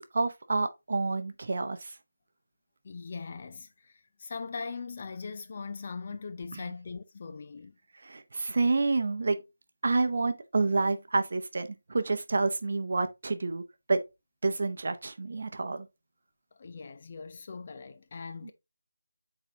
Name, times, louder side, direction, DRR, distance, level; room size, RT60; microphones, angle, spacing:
voice 1, 0.0-1.9 6.5-6.6 8.0-9.4 9.8-13.6 13.9-14.0 14.4-15.9, right 3 dB, 35° right, 0.7 m, -28 dB
voice 2, 2.8-7.8 16.5-18.5, left 4 dB, 20° left, 0.3 m, -40 dB
8.4 x 4.0 x 2.8 m
figure-of-eight pair, 180°, 0 cm